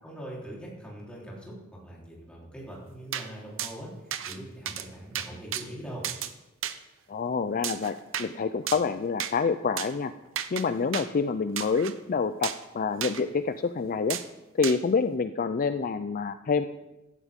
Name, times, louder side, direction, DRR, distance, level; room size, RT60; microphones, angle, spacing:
voice 1, 0.0-6.1, right 1 dB, 5° left, -5 dB, 3.6 m, -42 dB
sound 1, 3.1-3.3 3.6-3.7 4.1-4.4 4.7-4.9 5.1-5.6 6.0-6.3 6.6-6.8 7.6-8.3 8.7-8.9 9.2-9.3 9.8-9.9 10.4-10.6 10.9-11.1 11.6-11.9 12.4-12.6 13.0-13.2 14.1-14.3 14.6-14.8, right 10 dB, 65° right, 0.8 m, -33 dB
voice 2, 7.1-10.1 10.5-14.2 14.5-16.6, left 5 dB, 40° left, 10 dB, 0.4 m, -27 dB
16.0 x 12.0 x 3.6 m, 1.0 s
head